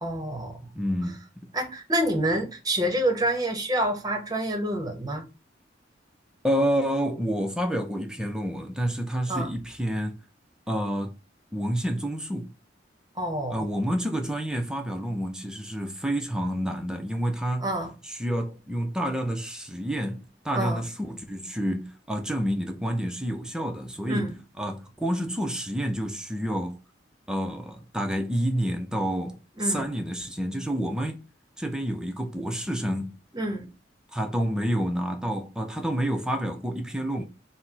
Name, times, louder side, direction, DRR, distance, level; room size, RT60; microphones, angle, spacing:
voice 1, 0.0-0.7 1.5-5.2 9.3-9.5 13.2-13.7 17.6-17.9 20.5-20.8 24.1-24.4 29.6-29.9 33.3-33.7, right 1 dB, 20° right, 0.8 m, -27 dB
voice 2, 0.8-1.5 6.4-10.2 10.7-11.2 11.5-12.5 13.5-17.7 18.0-26.8 27.3-31.2 31.6-33.2 34.1-37.2, equal, 5° right, 0.5 m, -29 dB
4.1 x 2.0 x 4.4 m
head